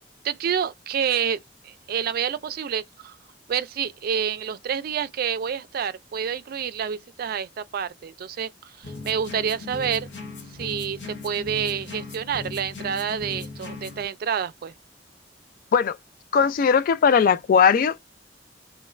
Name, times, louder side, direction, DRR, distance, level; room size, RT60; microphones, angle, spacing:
voice 1, 0.2-3.2 3.5-8.5 8.8-10.1 10.6-11.0 11.2-14.7, right 7 dB, 55° right, 0.3 m, -28 dB
sound 1, 8.8-14.1, left 3 dB, 85° left, 0.8 m, -38 dB
voice 2, 16.3-18.0, left 6 dB, 50° left, 0.3 m, -19 dB
2.3 x 2.2 x 3.1 m
head